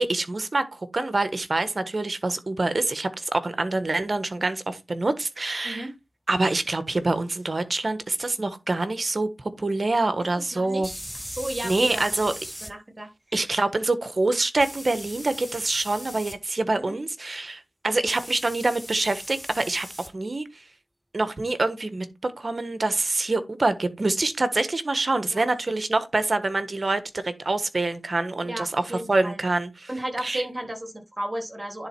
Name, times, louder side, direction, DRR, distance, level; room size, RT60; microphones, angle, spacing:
voice 1, 0.0-5.8 6.3-10.9 11.6-12.3 13.3-19.9 20.1-20.5 21.1-29.9 30.2-30.4, right 2 dB, 45° right, 1.4 m, -26 dB
sound 1, 7.4-7.5 10.8-12.7 14.6-16.4 18.1-20.1, equal, ahead, 0.8 m, -39 dB
voice 2, 10.5-11.0 11.3-13.1 13.5-13.6 16.8-16.9 25.3-25.4 28.4-29.4 29.9-31.9, right 1 dB, 30° right, 3.5 m, -34 dB
10.5 x 4.2 x 4.6 m
cardioid pair, 55°, 0 cm